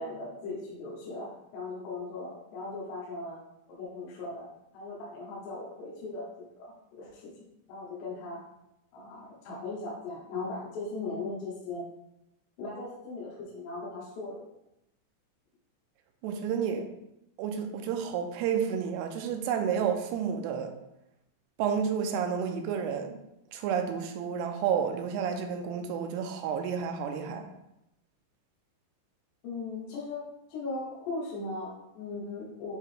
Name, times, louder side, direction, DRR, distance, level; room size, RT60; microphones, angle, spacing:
voice 1, 0.0-3.4 3.7-4.5 4.7-6.3 6.6-7.3 7.7-8.4 8.9-11.9 12.6-14.4 29.4-32.8, left 3 dB, 80° left, -5 dB, 3.5 m, -38 dB
voice 2, 16.2-16.9 17.4-20.7 21.6-23.2 23.5-27.5, right 7 dB, 80° right, 5 dB, 2.6 m, -30 dB
9.4 x 3.2 x 3.3 m, 0.84 s
omnidirectional pair, 4.9 m